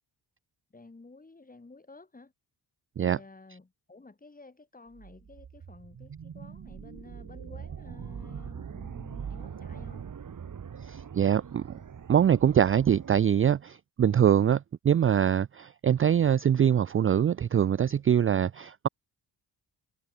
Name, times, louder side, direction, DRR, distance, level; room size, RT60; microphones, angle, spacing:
voice 1, 0.7-2.3 3.0-10.1, left 3 dB, 20° left, 7.1 m, -52 dB
sound 1, 4.9-13.2, right 7 dB, 50° right, 3.6 m, -42 dB
voice 2, 10.8-11.8 12.1-18.9, right 9 dB, 30° right, 0.4 m, -24 dB
cardioid pair, 125°, 42 cm